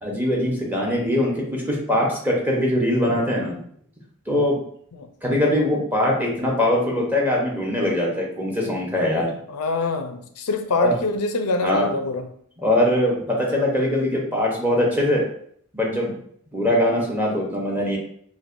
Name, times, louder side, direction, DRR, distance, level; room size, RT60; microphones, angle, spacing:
voice 1, 0.0-3.6 4.3-4.6 5.2-9.3 10.8-11.0 11.6-11.9 12.6-15.2 15.7-16.2 16.5-18.0, left 1 dB, 10° right, -3 dB, 0.8 m, -22 dB
voice 2, 9.5-12.3, left 3 dB, 80° left, 6 dB, 0.5 m, -25 dB
4.6 x 2.2 x 2.5 m, 0.64 s
head